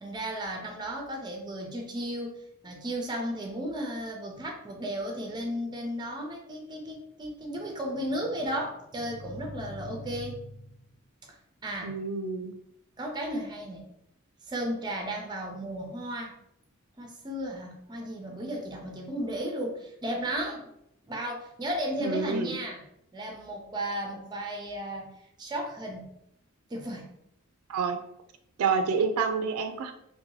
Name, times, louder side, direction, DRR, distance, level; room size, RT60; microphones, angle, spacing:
voice 1, 0.0-10.5 11.6-11.9 13.0-13.9 14.5-16.3 17.0-20.7 21.1-22.8 23.1-25.1 25.4-26.1 26.7-27.1, right 1 dB, 20° right, 1 dB, 0.5 m, -34 dB
voice 2, 11.8-12.5 22.0-22.6 27.7-28.0 28.6-29.9, right 5 dB, 85° right, 7 dB, 0.3 m, -28 dB
2.7 x 2.1 x 2.9 m, 0.76 s
head